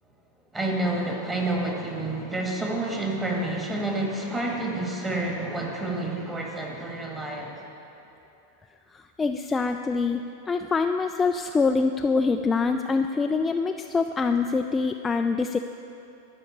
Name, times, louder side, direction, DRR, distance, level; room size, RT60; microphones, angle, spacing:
voice 1, 0.5-7.6, right 2 dB, 15° right, 0 dB, 1.7 m, -29 dB
voice 2, 8.9-10.2 10.5-15.6, left 4 dB, 15° left, 6 dB, 0.3 m, -25 dB
12.0 x 5.0 x 8.3 m, 2.8 s
figure-of-eight pair, 90°, 0 cm